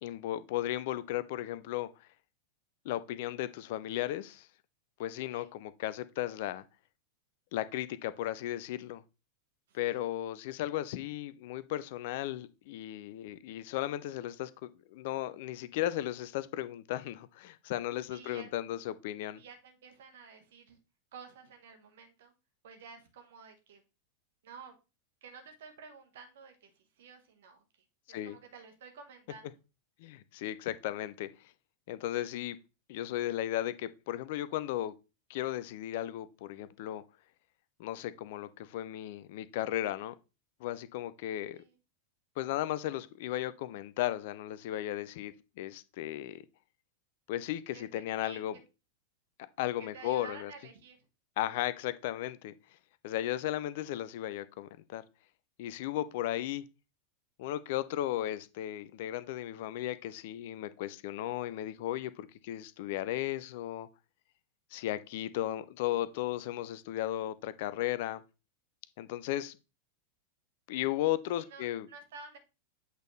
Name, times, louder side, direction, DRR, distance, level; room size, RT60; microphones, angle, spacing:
voice 1, 0.0-1.9 2.8-4.5 5.0-6.6 7.5-9.0 9.7-19.4 28.1-28.4 30.0-31.3 31.9-32.6 32.9-34.9 35.3-37.0 37.8-40.1 40.6-41.6 42.4-46.4 47.3-48.5 49.6-50.5 51.4-52.5 53.0-55.0 55.6-56.6 57.4-63.9 64.7-68.2 69.0-69.6 70.7-71.9, left 13 dB, 50° left, 0.5 m, -35 dB
voice 2, 9.7-10.1 10.6-10.8 18.1-18.5 19.4-20.8 21.1-22.3 22.6-23.8 24.4-24.8 25.2-29.6 41.5-41.7 47.7-48.6 49.8-51.1 71.3-72.4, right 5 dB, 55° right, 1.5 m, -52 dB
8.1 x 4.1 x 3.2 m
figure-of-eight pair, 90°, 0 cm